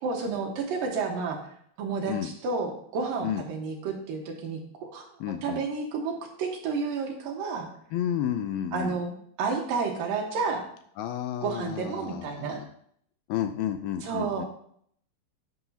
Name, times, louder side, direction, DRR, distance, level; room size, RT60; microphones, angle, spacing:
voice 1, 0.0-1.4 1.8-5.0 5.4-7.7 8.7-10.6 11.4-12.6 14.0-14.4, right 4 dB, 65° right, 2 dB, 2.7 m, -31 dB
voice 2, 5.2-5.7 7.9-9.0 11.0-12.7 13.3-14.4, left 10 dB, 80° left, 9 dB, 2.2 m, -31 dB
10.5 x 9.4 x 2.8 m, 0.64 s
omnidirectional pair, 4.6 m